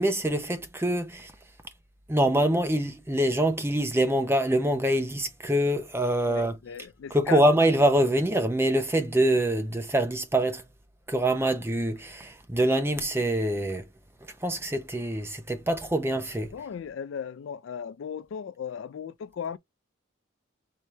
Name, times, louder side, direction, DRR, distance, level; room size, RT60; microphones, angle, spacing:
voice 1, 0.0-1.3 2.1-6.5 7.1-10.6 11.1-13.8 14.4-16.5, right 1 dB, 10° right, 0.6 m, -25 dB
voice 2, 6.2-7.5 16.5-19.6, left 7 dB, 65° left, 0.3 m, -36 dB
4.7 x 2.8 x 3.2 m
head